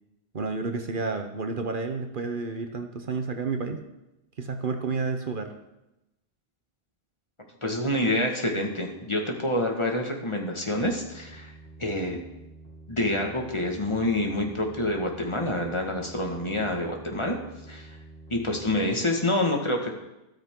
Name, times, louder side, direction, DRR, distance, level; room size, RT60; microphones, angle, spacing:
voice 1, 0.3-3.8 4.4-5.5, right 4 dB, 55° right, 6 dB, 1.1 m, -30 dB
voice 2, 7.6-11.5 11.8-12.2 12.9-17.4 17.7-18.0 18.3-19.9, left 1 dB, 30° left, 2 dB, 1.7 m, -27 dB
sound 1, 10.7-18.8, right 2 dB, 65° left, 3.7 m, -48 dB
13.0 x 13.0 x 3.7 m, 0.94 s
omnidirectional pair, 1.0 m